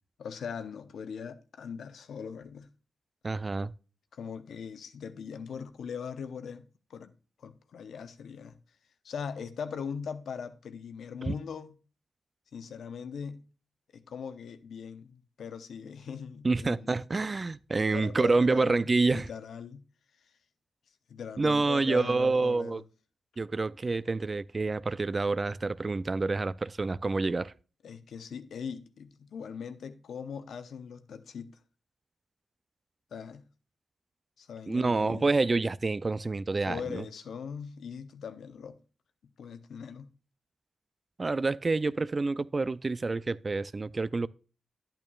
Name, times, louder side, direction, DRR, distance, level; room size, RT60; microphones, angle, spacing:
voice 1, 0.2-2.7 4.1-7.1 7.4-8.6 9.0-11.8 12.5-13.4 13.9-17.0 17.9-19.8 20.2-20.3 21.1-22.8 27.8-31.5 33.1-33.5 34.4-35.3 36.7-38.8 39.4-40.1, left 6 dB, 80° left, 0.8 m, -40 dB
voice 2, 3.2-3.7 11.3-11.4 16.4-19.3 21.4-22.8 23.4-27.5 34.7-37.0 41.2-44.3, right 3 dB, 35° right, 0.4 m, -28 dB
10.5 x 8.8 x 2.3 m
cardioid pair, 70°, 0 cm